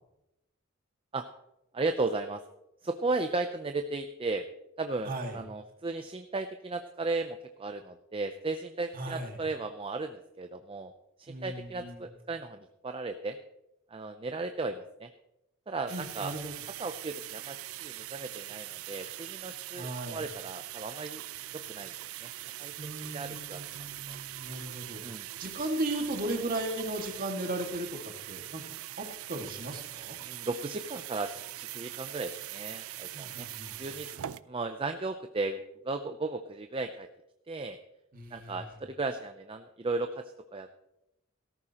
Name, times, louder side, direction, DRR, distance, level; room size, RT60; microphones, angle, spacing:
voice 1, 1.7-2.4 2.8-4.5 4.8-10.9 11.2-13.4 13.9-15.1 15.7-16.3 16.8-21.2 21.7-21.9 22.2-22.3 22.6-23.6 24.1-24.2 25.0-25.3 30.2-33.5 33.8-34.2 34.5-37.1 37.5-37.8 38.3-40.2 40.5-40.7, right 3 dB, 25° right, 7 dB, 0.5 m, -35 dB
voice 2, 5.0-5.4 8.9-9.4 11.3-12.1 15.9-16.5 19.8-20.2 22.8-25.0 25.4-28.6 29.0-30.2 33.1-33.9 38.1-38.7, right 1 dB, 45° right, 3 dB, 2.0 m, -36 dB
sound 1, 15.9-34.4, right 14 dB, 85° right, 0.5 m, -42 dB
17.5 x 14.0 x 2.9 m, 0.87 s
head